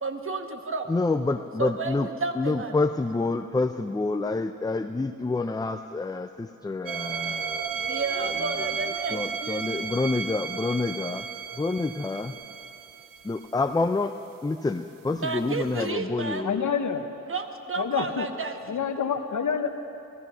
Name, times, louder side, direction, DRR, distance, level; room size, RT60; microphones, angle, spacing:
voice 1, 0.0-0.9 1.6-2.7 7.9-9.9 15.1-16.5 17.3-18.8, right 3 dB, 40° right, 6 dB, 1.1 m, -32 dB
voice 2, 0.9-2.1 2.4-8.0 9.1-11.3 11.6-12.3 13.2-14.1 14.4-16.7, left 3 dB, 10° left, 7 dB, 0.4 m, -28 dB
sound 1, 6.9-13.4 15.8-15.9, right 6 dB, 90° right, 0.6 m, -33 dB
voice 3, 16.4-17.1 17.8-18.3 18.7-19.7, left 7 dB, 65° left, 8 dB, 1.0 m, -27 dB
14.5 x 14.5 x 5.6 m, 2.8 s
cardioid pair, 70°, 32 cm